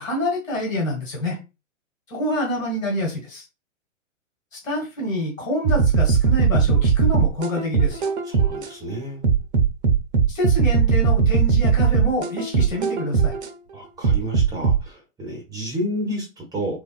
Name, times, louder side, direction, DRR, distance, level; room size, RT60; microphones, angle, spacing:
voice 1, 0.0-1.4 2.1-3.4 4.5-8.1 10.3-13.3, left 1 dB, 80° left, 0 dB, 1.5 m, -27 dB
sound 1, 5.6-8.7 9.2-13.5 14.0-14.8, right 6 dB, 55° right, 0.6 m, -19 dB
voice 2, 8.2-9.2 13.7-16.8, equal, 10° right, 1 dB, 0.7 m, -30 dB
3.3 x 2.4 x 2.2 m, 0.27 s
figure-of-eight pair, 115°, 39 cm